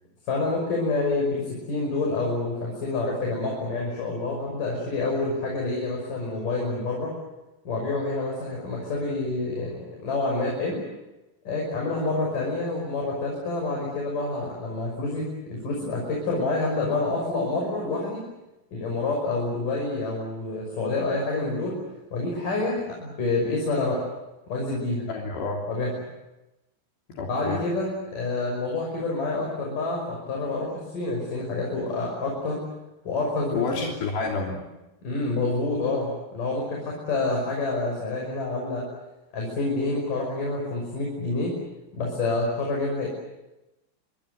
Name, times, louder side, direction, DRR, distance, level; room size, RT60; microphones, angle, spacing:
voice 1, 0.3-7.1 7.7-10.8 11.5-18.2 18.7-21.8 22.1-24.1 24.5-25.1 25.7-25.9 27.3-32.6 33.1-33.9 35.0-38.9 39.3-41.6 41.9-43.1, left 2 dB, 50° left, -1 dB, 7.3 m, -28 dB
voice 2, 25.1-25.6 27.1-27.6 33.5-34.6, left 4 dB, 70° left, 0 dB, 5.2 m, -29 dB
27.5 x 24.0 x 8.0 m, 0.99 s
omnidirectional pair, 5.1 m